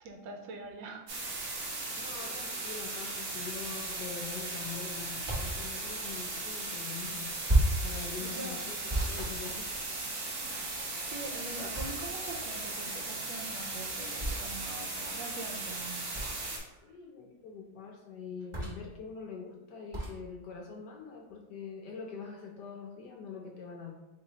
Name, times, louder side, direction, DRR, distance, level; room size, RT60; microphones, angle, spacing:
voice 1, 0.0-1.1 8.2-8.7 10.4-16.1, right 2 dB, 80° right, 3 dB, 1.3 m, -44 dB
sound 1, 1.1-16.6, right 2 dB, 55° right, 1.0 m, -37 dB
voice 2, 1.9-7.4 7.8-9.8 11.6-11.8 16.8-23.9, left 6 dB, 75° left, 1 dB, 1.0 m, -44 dB
sound 2, 5.3-5.6 7.5-7.9 8.9-10.1 11.7-12.3 14.2-14.4 16.1-16.5 18.5-18.9 19.9-20.2, right 1 dB, 30° right, 0.6 m, -31 dB
4.0 x 3.2 x 2.7 m, 0.99 s
omnidirectional pair, 2.1 m